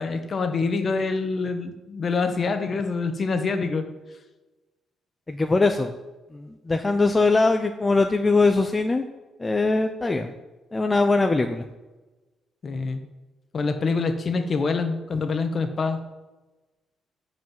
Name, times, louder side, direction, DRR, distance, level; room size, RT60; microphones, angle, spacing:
voice 1, 0.0-3.8 12.6-13.1 13.5-16.0, left 4 dB, 45° left, 7 dB, 1.6 m, -26 dB
voice 2, 5.3-5.9 6.3-9.0 9.4-10.3 10.7-11.6, left 3 dB, 20° left, 6 dB, 0.8 m, -21 dB
14.0 x 5.1 x 9.4 m, 1.1 s
cardioid pair, 90°, 0 cm